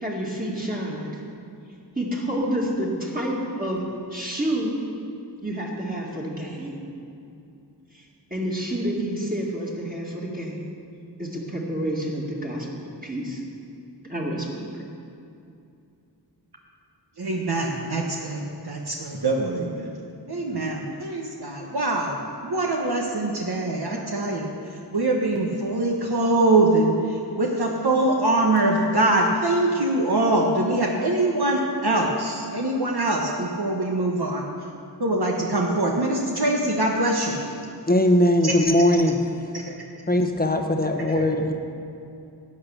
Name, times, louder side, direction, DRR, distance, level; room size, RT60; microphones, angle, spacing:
voice 1, 0.0-1.2 2.0-3.8 4.1-4.8 5.4-6.8 7.9-8.0 8.3-10.7 11.2-13.4 14.0-14.8, right 1 dB, 20° right, -4 dB, 2.0 m, -29 dB
voice 2, 17.2-19.9 20.3-22.2 22.4-34.5 35.0-37.4 38.4-38.5 39.5-39.7, right 2 dB, 65° right, -1 dB, 1.1 m, -23 dB
voice 3, 37.9-39.2 40.1-41.5, left 1 dB, 20° left, 5 dB, 1.0 m, -20 dB
11.0 x 8.4 x 6.5 m, 2.6 s
wide cardioid pair, 40°, 42 cm